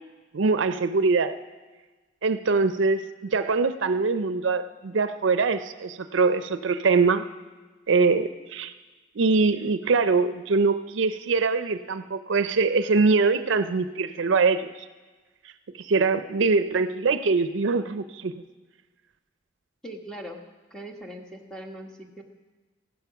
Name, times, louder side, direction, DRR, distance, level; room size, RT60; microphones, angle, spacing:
voice 1, 0.3-1.4 2.2-7.3 7.9-8.7 9.2-14.7 15.8-18.3, right 4 dB, 70° right, 11 dB, 0.5 m, -23 dB
voice 2, 19.8-20.4 20.7-22.2, right 1 dB, 5° left, 2 dB, 1.3 m, -40 dB
15.0 x 11.5 x 5.9 m, 1.3 s
head